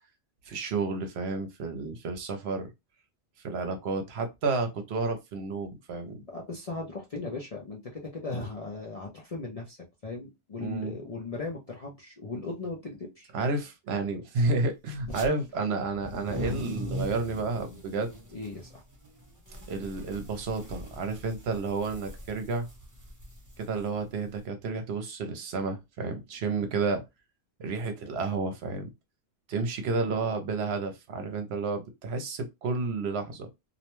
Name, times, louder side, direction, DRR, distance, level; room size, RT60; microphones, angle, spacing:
voice 1, 0.5-2.7 3.4-6.2 10.6-10.9 13.3-18.1 19.7-22.7 23.6-27.0 27.6-28.9 29.5-33.5, right 3 dB, 70° right, 0.9 m, -31 dB
voice 2, 6.2-9.8 10.0-13.3 18.3-18.8, left 3 dB, 45° left, 0.5 m, -38 dB
sound 1, 15.0-15.3 15.9-24.4, equal, 20° right, 0.7 m, -40 dB
2.5 x 2.1 x 2.9 m
omnidirectional pair, 1.2 m